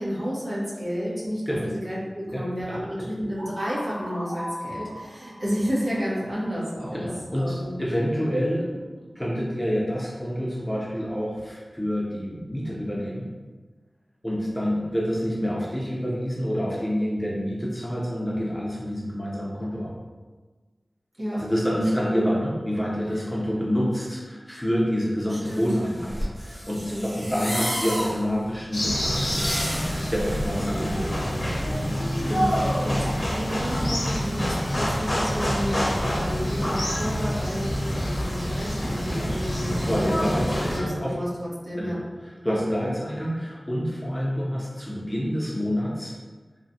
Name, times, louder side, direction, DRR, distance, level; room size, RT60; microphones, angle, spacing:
voice 1, 0.0-7.1 7.3-7.8 21.2-21.4 25.3-25.7 26.9-27.1 32.1-41.3 41.6-42.0 42.4-42.6, equal, 55° right, -8 dB, 1.1 m, -31 dB
voice 2, 2.3-2.8 6.9-13.3 14.2-19.9 21.3-31.9 39.1-39.3 39.6-41.1 41.8-41.9 42.4-46.2, equal, 15° left, -5 dB, 0.6 m, -28 dB
sound 1, 3.4-7.1, equal, 35° right, 1.4 m, -39 dB
sound 2, 25.5-30.6, equal, ahead, 1.0 m, -32 dB
sound 3, 28.7-40.8, equal, 45° left, 0.8 m, -26 dB
3.3 x 2.2 x 2.7 m, 1.4 s
wide cardioid pair, 65°, 0 cm